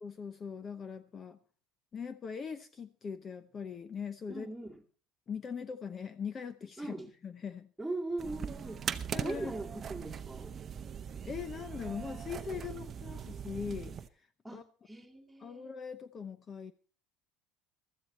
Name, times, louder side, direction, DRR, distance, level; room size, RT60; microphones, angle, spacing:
voice 1, 0.0-1.4 1.9-4.5 5.3-6.9 7.2-7.7 9.1-9.5 11.2-14.0 14.5-14.6 15.4-16.7, left 6 dB, 25° left, 0.8 m, -41 dB
voice 2, 4.3-4.8 6.8-7.1 7.8-8.9 9.2-10.6 14.4-15.7, right 2 dB, 5° right, 2.1 m, -40 dB
sound 1, 8.2-14.1, right 7 dB, 30° right, 0.8 m, -40 dB
15.0 x 13.5 x 4.2 m
cardioid pair, 150°, 0 cm